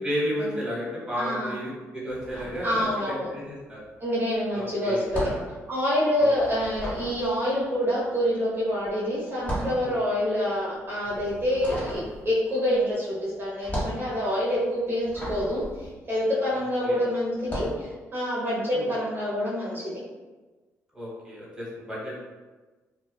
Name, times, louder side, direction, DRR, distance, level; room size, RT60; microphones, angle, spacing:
voice 1, 0.0-3.8 4.5-5.4 6.2-6.7 9.8-10.0 16.5-17.0 18.7-18.9 20.9-22.2, equal, 15° right, -6 dB, 1.1 m, -33 dB
voice 2, 1.2-1.5 2.6-3.3 4.0-5.3 5.7-20.0, equal, 40° right, -8 dB, 0.7 m, -27 dB
sound 1, 2.1-3.3 3.6-16.8 17.3-17.8, equal, 25° left, 1.2 m, -36 dB
2.5 x 2.2 x 2.2 m, 1.3 s
supercardioid pair, 60°, 6 cm